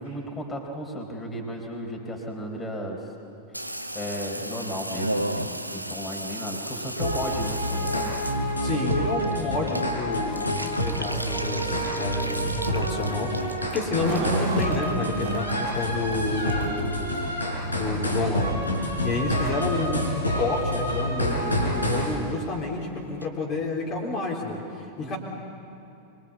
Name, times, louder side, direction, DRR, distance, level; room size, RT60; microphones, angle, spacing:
voice 1, 0.0-3.0 3.9-8.1 25.0-25.2, equal, 15° left, 1 dB, 4.2 m, -34 dB
Water tap faucet / Bathtub (filling or washing), 3.5-18.1 18.4-19.1 19.4-19.5 19.7-19.8 20.0-20.4 20.7-20.8 21.0-21.1 21.4-21.5 21.7-21.8 22.1-22.2 22.4-22.5 22.8-22.9 23.2-23.3, right 1 dB, 90° right, 1.0 m, -36 dB
sound 1, 7.0-22.1, equal, 85° left, 5.1 m, -28 dB
voice 2, 8.6-18.7 19.0-25.2, left 3 dB, 35° left, -2 dB, 3.9 m, -30 dB
sound 2, 13.9-15.8 16.1-16.2 16.7-16.8 17.7-17.8 18.1-18.2, right 8 dB, 50° right, 2.0 m, -34 dB
24.0 x 24.0 x 8.5 m, 2.7 s
figure-of-eight pair, 90°, 0 cm